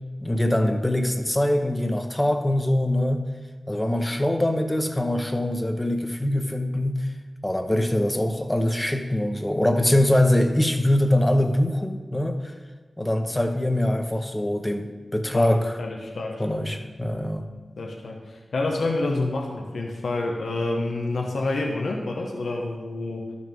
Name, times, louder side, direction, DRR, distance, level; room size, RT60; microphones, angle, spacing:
voice 1, 0.2-3.2 3.7-7.1 7.4-12.5 13.0-15.7 16.4-17.5, left 1 dB, 20° left, 5 dB, 0.9 m, -23 dB
voice 2, 15.3-16.6 17.8-23.3, left 2 dB, 85° left, 1 dB, 1.0 m, -28 dB
12.0 x 6.4 x 3.6 m, 1.4 s
cardioid pair, 40°, 0 cm